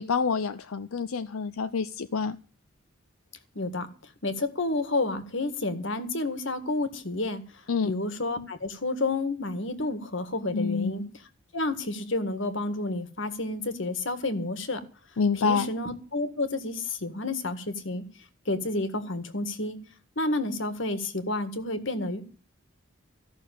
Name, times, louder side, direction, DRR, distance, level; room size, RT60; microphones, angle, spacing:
voice 1, 0.0-2.4 7.7-7.9 10.5-11.1 15.2-15.7, left 5 dB, 90° left, 11 dB, 0.6 m, -27 dB
voice 2, 3.6-3.9 4.2-7.4 7.8-11.0 11.5-14.8 15.4-18.0 18.5-19.8 20.2-22.2, left 2 dB, 60° left, 10 dB, 1.8 m, -30 dB
15.0 x 6.3 x 9.9 m, 0.38 s
head